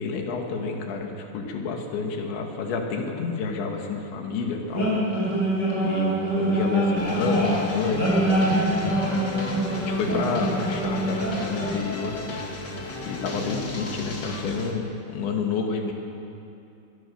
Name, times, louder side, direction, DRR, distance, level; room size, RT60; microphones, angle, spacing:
voice 1, 0.0-5.0 5.8-8.6 9.0-9.2 9.8-12.2 13.1-15.9, left 4 dB, 80° left, 2 dB, 4.5 m, -29 dB
sound 1, 4.7-11.7, right 1 dB, 15° left, 7.9 m, -25 dB
sound 2, 7.0-14.7, left 2 dB, 30° left, 2.3 m, -34 dB
24.5 x 22.5 x 7.2 m, 2.7 s
omnidirectional pair, 5.2 m